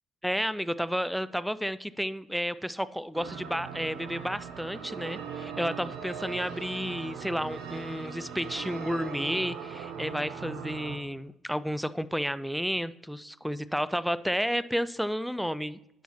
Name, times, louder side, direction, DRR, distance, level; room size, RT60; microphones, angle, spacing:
voice 1, 0.2-15.8, equal, ahead, 16 dB, 0.3 m, -31 dB
sound 1, 3.1-11.0, right 7 dB, 65° right, 0.6 m, -39 dB
10.0 x 5.3 x 2.9 m, 0.87 s
figure-of-eight pair, 45°, 0 cm